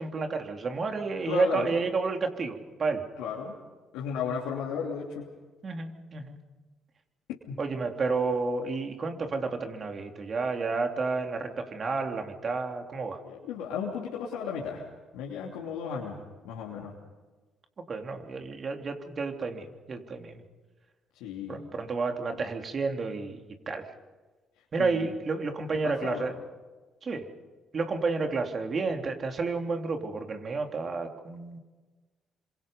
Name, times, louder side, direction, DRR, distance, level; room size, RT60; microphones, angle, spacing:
voice 1, 0.0-3.0 5.6-6.4 7.6-13.2 17.9-20.4 21.5-23.4 23.7-23.9 24.7-26.4 27.0-27.3 27.7-31.6, right 4 dB, 45° right, 4 dB, 3.4 m, -31 dB
voice 2, 1.2-1.7 3.2-3.5 3.9-5.3 7.5-7.6 13.2-14.9 15.1-16.2 16.4-16.9 21.1-21.6 24.8-25.1 25.8-26.3, left 6 dB, 80° left, -3 dB, 2.9 m, -34 dB
28.5 x 26.0 x 5.5 m, 1.3 s
hypercardioid pair, 50°, 0 cm